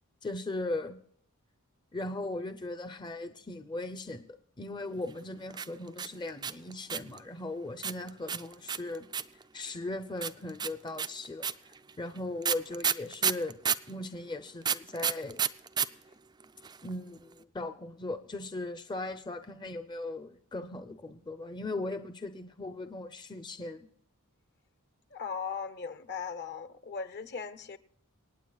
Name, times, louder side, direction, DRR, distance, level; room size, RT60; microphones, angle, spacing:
voice 1, 0.2-1.0 1.9-9.1 9.3-13.6 13.9-15.4 16.8-23.9, left 2 dB, 20° left, 0.6 m, -38 dB
sound 1, 5.5-7.2 7.8-9.4 10.2-13.9 14.6-15.9 16.1-16.2 16.4-16.9, right 7 dB, 20° right, 0.4 m, -30 dB
voice 2, 25.1-27.8, left 5 dB, 50° left, 0.9 m, -38 dB
27.0 x 9.2 x 2.3 m
head